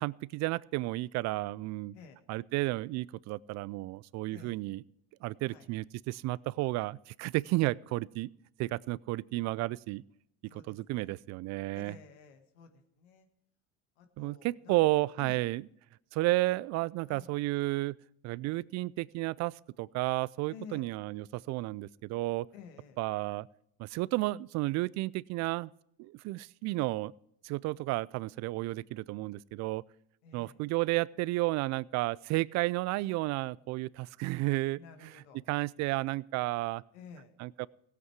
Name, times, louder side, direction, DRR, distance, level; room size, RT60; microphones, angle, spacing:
voice 1, 0.0-1.9 2.3-4.8 5.2-8.3 8.6-10.0 10.5-11.9 14.2-15.6 16.1-18.0 18.2-22.5 23.0-23.5 23.8-25.7 26.0-27.1 27.4-29.8 30.3-34.8 35.5-36.8 37.4-37.7, right 20 dB, 55° right, 23 dB, 0.4 m, -32 dB
voice 2, 10.5-11.1 11.7-13.3 14.0-14.8 15.2-15.3 17.1-17.3 20.5-20.9 22.5-23.0 30.2-30.6 34.8-35.4 36.9-37.3, left 6 dB, 80° left, 7 dB, 1.7 m, -52 dB
16.0 x 8.3 x 4.7 m, 0.75 s
supercardioid pair, 85°, 32 cm